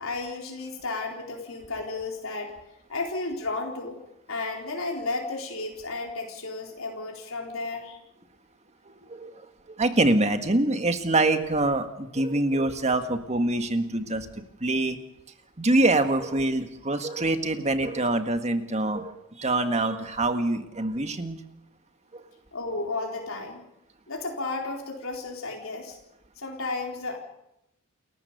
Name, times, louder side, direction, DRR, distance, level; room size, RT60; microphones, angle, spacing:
voice 1, 0.0-2.5 2.9-4.0 4.3-8.0 22.5-23.6 24.1-26.0 26.4-27.2, left 3 dB, 75° left, 0 dB, 4.0 m, -33 dB
voice 2, 9.0-14.3 14.6-15.0 15.6-21.4 22.1-22.2, right 2 dB, 30° right, 8 dB, 1.7 m, -25 dB
29.0 x 14.5 x 6.9 m, 0.83 s
head